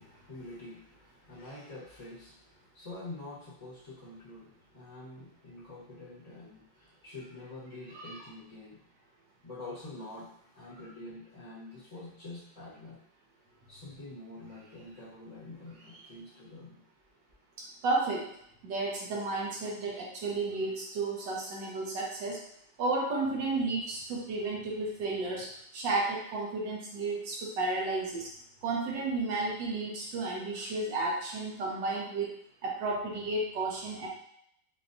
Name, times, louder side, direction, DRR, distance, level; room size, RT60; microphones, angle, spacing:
voice 1, 0.0-8.8 9.4-10.3 10.5-13.0 13.7-16.8, left 2 dB, 25° left, -8 dB, 0.9 m, -46 dB
voice 2, 17.6-18.3 18.6-22.4 22.8-28.3 28.6-32.3 32.6-34.1, right 3 dB, 70° right, -3 dB, 1.6 m, -32 dB
5.9 x 2.2 x 2.6 m, 0.70 s
omnidirectional pair, 2.1 m